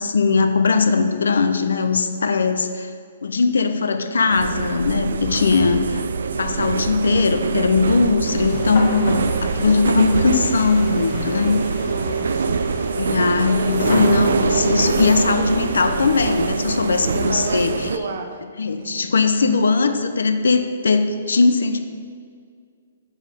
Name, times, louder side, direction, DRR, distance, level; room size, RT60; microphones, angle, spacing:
voice 1, 0.0-2.9 3.2-6.1 6.4-11.6 13.0-17.9 18.6-21.8, left 4 dB, 90° left, 8 dB, 0.5 m, -19 dB
sound 1, 4.3-18.0, right 5 dB, 75° right, 0.3 m, -24 dB
sound 2, 8.2-16.2, left 1 dB, 70° left, 1.6 m, -31 dB
voice 2, 11.8-12.5 17.1-18.4 18.8-19.0, right 3 dB, 60° right, 5 dB, 0.7 m, -31 dB
7.0 x 3.7 x 4.2 m, 2.1 s
hypercardioid pair, 150°, 0 cm